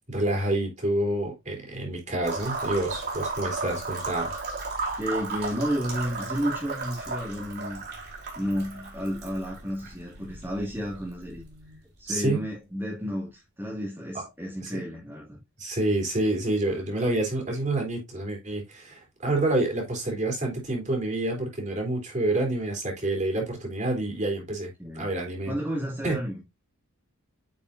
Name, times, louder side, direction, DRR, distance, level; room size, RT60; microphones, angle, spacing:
voice 1, 0.1-4.3 12.1-12.4 14.1-14.2 14.6-14.8 15.6-24.7 24.9-25.5 26.0-26.2, right 2 dB, 35° right, 3.3 m, -28 dB
sound 1, 2.2-12.0, right 3 dB, 50° right, 3.7 m, -35 dB
voice 2, 5.0-7.8 8.4-11.4 12.0-15.4 24.8-25.1 25.5-26.4, equal, 10° right, 2.0 m, -32 dB
9.4 x 5.4 x 2.6 m
head